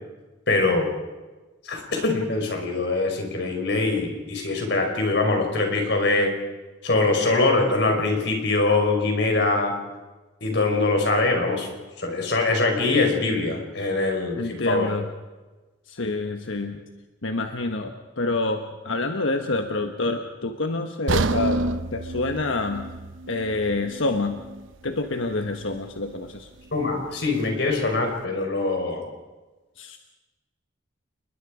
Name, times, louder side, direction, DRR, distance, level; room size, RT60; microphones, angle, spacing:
voice 1, 0.5-0.9 1.6-6.3 6.8-9.7 10.4-11.7 12.0-14.9 26.7-29.1, left 3 dB, 60° left, 3 dB, 4.8 m, -23 dB
voice 2, 14.4-15.1 15.9-16.8 17.2-22.9 23.3-24.4 24.8-26.5 29.8-30.0, left 2 dB, 80° left, 5 dB, 1.3 m, -27 dB
sound 1, 21.1-25.1 25.5-25.7 26.2-26.3, right 2 dB, 80° right, 0.8 m, -29 dB
29.5 x 21.0 x 5.0 m, 1.2 s
head